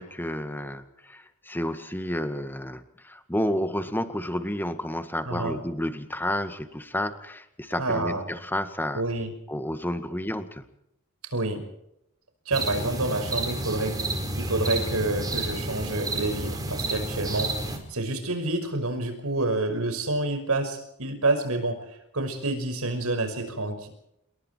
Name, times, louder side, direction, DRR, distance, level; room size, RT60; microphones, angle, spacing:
voice 1, 0.0-9.0 9.5-10.6, left 1 dB, 10° left, 9 dB, 1.9 m, -31 dB
voice 2, 5.3-5.6 7.8-8.3 8.9-9.3 11.2-11.6 12.5-23.9, right 2 dB, 85° right, 7 dB, 5.8 m, -28 dB
sound 1, 12.5-17.8, right 2 dB, 15° right, 4.7 m, -30 dB
28.0 x 23.0 x 4.6 m, 0.79 s
head